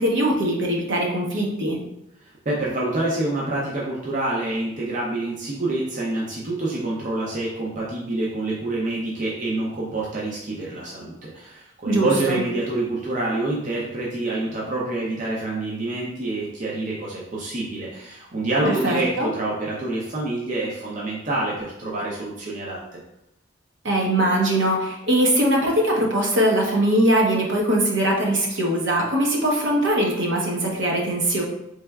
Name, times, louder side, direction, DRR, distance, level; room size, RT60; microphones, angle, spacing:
voice 1, 0.0-1.8 11.9-12.4 18.6-19.3 23.8-31.4, right 1 dB, 70° right, -1 dB, 0.9 m, -21 dB
voice 2, 2.5-23.0, right 2 dB, 40° right, -4 dB, 0.5 m, -27 dB
4.2 x 3.3 x 2.3 m, 0.82 s
head